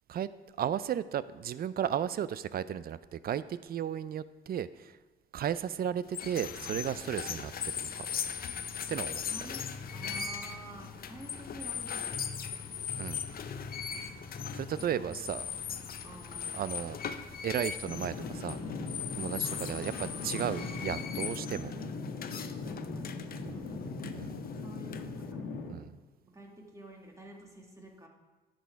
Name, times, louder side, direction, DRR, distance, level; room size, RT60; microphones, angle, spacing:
voice 1, 0.6-5.0 5.3-8.1 8.9-9.2 13.0-13.2 14.5-15.4 16.5-17.0 17.4-18.6 19.1-21.7 23.5-23.7 24.1-24.3 25.7-25.9, right 9 dB, 50° right, 16 dB, 0.4 m, -34 dB
sound 1, 6.0-25.3, left 7 dB, 50° left, 0.6 m, -39 dB
sound 2, 6.4-21.0, left 4 dB, 25° left, 1.1 m, -48 dB
voice 2, 9.3-9.6 9.9-12.2 14.8-14.9 15.4-16.6 19.7-21.9 22.5-23.8 24.6-25.4 26.2-28.1, right 1 dB, 15° right, 0 dB, 1.9 m, -50 dB
sound 3, 17.8-25.7, left 3 dB, 90° left, 1.6 m, -39 dB
10.0 x 6.4 x 4.6 m, 1.2 s
cardioid pair, 90°, 20 cm